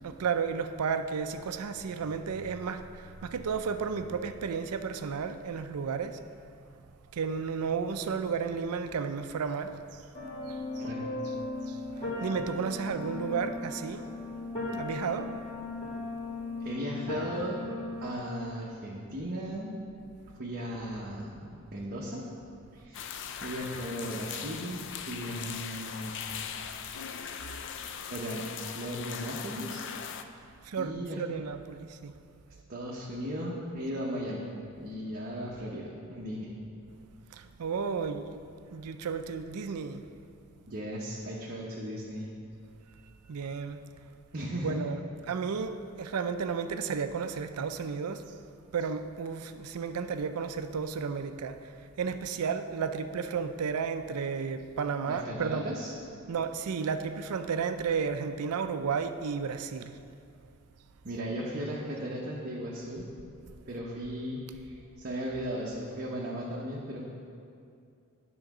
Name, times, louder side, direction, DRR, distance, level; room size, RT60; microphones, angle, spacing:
voice 1, 0.0-6.2 7.1-9.8 10.5-10.8 11.7-11.8 12.2-14.0 14.8-15.3 30.6-32.1 37.3-38.4 38.7-40.0 43.3-43.8 44.6-45.0 45.3-48.2 48.7-51.7 52.0-55.6 56.3-60.0, right 6 dB, 90° right, 9 dB, 0.4 m, -33 dB
sound 1, 10.1-18.1, left 2 dB, 25° left, 2.1 m, -37 dB
voice 2, 16.6-17.6 18.0-19.8 20.4-22.2 22.7-23.1 23.4-26.1 28.1-29.9 30.8-31.2 32.7-34.5 34.8-36.5 40.7-42.3 44.3-44.8 55.1-55.9 61.0-63.0 63.7-67.0, equal, 45° right, -5 dB, 0.9 m, -36 dB
sound 2, 22.9-30.2, left 8 dB, 55° left, 0.4 m, -40 dB
10.5 x 3.9 x 6.0 m, 2.4 s
head